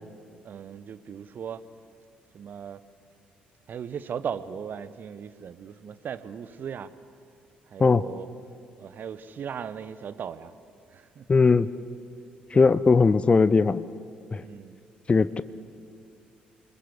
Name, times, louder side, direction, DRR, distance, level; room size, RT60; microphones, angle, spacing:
voice 1, 0.4-1.6 2.3-2.8 3.7-6.9 7.7-8.3 8.8-10.5 10.9-11.2 12.5-12.7 14.4-14.8, right 7 dB, 45° right, 1.0 m, -37 dB
voice 2, 11.3-11.7 12.5-13.8 14.3-14.4 15.1-15.4, left 4 dB, 25° left, 0.7 m, -19 dB
28.5 x 21.0 x 8.4 m
figure-of-eight pair, 45°, 4 cm